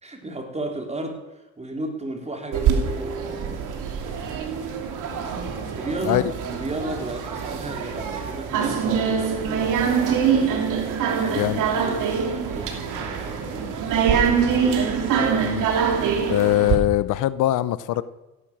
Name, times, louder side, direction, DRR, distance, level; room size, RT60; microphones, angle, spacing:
voice 1, 0.0-3.2 5.8-10.5 11.1-14.8, right 2 dB, 20° right, 4 dB, 3.9 m, -34 dB
sound 1, 2.5-16.8, right 6 dB, 90° right, 2.9 m, -24 dB
voice 2, 11.3-11.6 15.4-15.7 16.3-18.0, left 15 dB, 85° left, 16 dB, 0.8 m, -22 dB
17.0 x 11.5 x 7.3 m, 1.1 s
cardioid pair, 90°, 30 cm